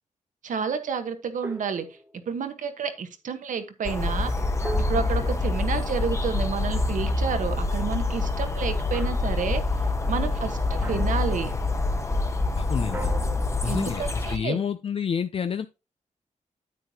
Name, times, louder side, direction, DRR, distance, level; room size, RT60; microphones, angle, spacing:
voice 1, 0.4-1.9 2.3-4.3 4.9-9.6 10.1-11.5 13.6-14.6, right 6 dB, 75° right, 1.3 m, -30 dB
sound 1, 1.4-2.4 4.6-6.4 8.9-9.4 10.8-11.3 12.9-14.2, right 2 dB, 15° right, 1.0 m, -40 dB
sound 2, 3.8-14.4, left 2 dB, 20° left, 1.0 m, -26 dB
voice 2, 12.6-13.1 13.6-15.7, left 7 dB, 45° left, 0.4 m, -29 dB
9.1 x 8.7 x 2.9 m
wide cardioid pair, 115°, 13 cm